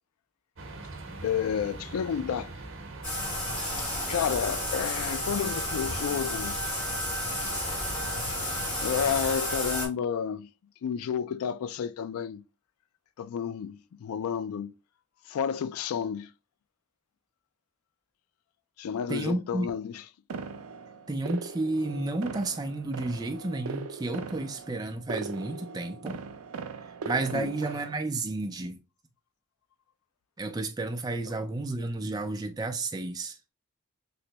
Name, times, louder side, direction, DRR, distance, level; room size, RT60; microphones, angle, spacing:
sound 1, 0.6-9.3, right 2 dB, 60° right, 0.8 m, -42 dB
voice 1, 1.2-2.5 3.8-6.6 7.4-7.6 8.2-10.5 10.8-12.4 13.2-14.7 15.3-16.3 18.8-20.0 27.3-27.5, left 7 dB, 85° left, 0.3 m, -31 dB
Bathtub (filling or washing), 3.0-9.9, left 1 dB, 35° left, 1.7 m, -32 dB
voice 2, 19.1-19.7 21.1-26.2 27.0-28.8 30.4-33.4, right 2 dB, 20° right, 0.4 m, -31 dB
sound 2, 20.3-28.0, right 4 dB, 80° right, 0.4 m, -40 dB
3.2 x 3.0 x 2.8 m
head